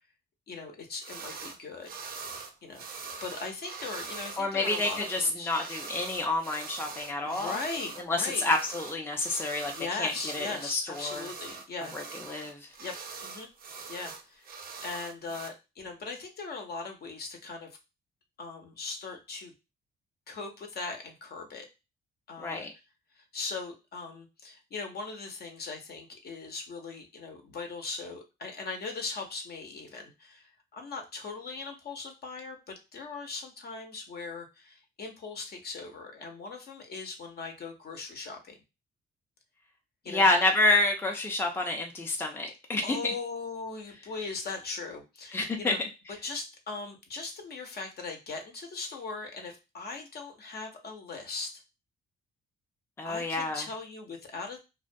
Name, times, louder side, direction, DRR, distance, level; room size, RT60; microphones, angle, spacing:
voice 1, 0.5-2.3 2.6-2.8 3.2-5.5 7.2-8.5 9.7-12.2 12.8-13.0 13.2-13.5 13.9-14.4 14.8-17.8 18.4-19.5 20.3-21.7 22.3-22.7 23.2-38.6 40.0-40.3 42.8-45.8 46.2-51.6 53.0-54.6, left 4 dB, 55° left, 4 dB, 0.7 m, -39 dB
sound 1, 1.0-1.6 1.8-15.5, right 5 dB, 50° right, 0.5 m, -43 dB
voice 2, 4.4-7.6 8.1-9.7 10.0-11.3 11.9-12.6 22.4-22.7 40.1-43.0 45.3-45.8 53.0-53.7, left 2 dB, 10° left, 2 dB, 0.4 m, -28 dB
2.2 x 2.2 x 2.5 m, 0.26 s
cardioid pair, 90°, 20 cm